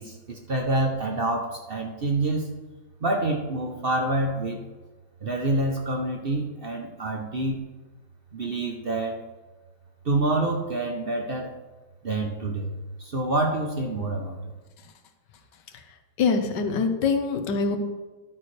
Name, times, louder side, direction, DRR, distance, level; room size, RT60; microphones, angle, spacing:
voice 1, 0.0-2.5 3.0-4.6 5.2-7.6 8.3-9.2 10.0-11.5 12.0-12.7 13.0-14.4, right 2 dB, 40° right, 2 dB, 0.8 m, -27 dB
voice 2, 15.7-17.8, left 5 dB, 70° left, 6 dB, 1.6 m, -25 dB
11.5 x 8.7 x 3.4 m, 1.3 s
omnidirectional pair, 2.0 m